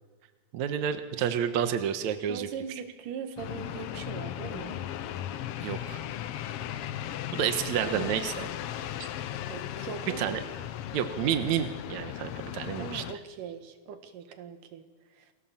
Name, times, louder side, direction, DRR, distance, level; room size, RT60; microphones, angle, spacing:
voice 1, 0.5-2.5 5.6-6.0 6.7-6.8 7.3-8.5 9.0-9.1 10.2-10.4 10.9-13.0, right 9 dB, 70° right, 8 dB, 2.4 m, -30 dB
voice 2, 2.3-4.8 7.8-8.1 9.4-10.4 12.8-15.3, right 7 dB, 90° right, 7 dB, 3.1 m, -41 dB
sound 1, 3.4-13.1, left 11 dB, 80° left, 1.3 m, -37 dB
28.5 x 19.0 x 7.4 m, 1.4 s
omnidirectional pair, 3.6 m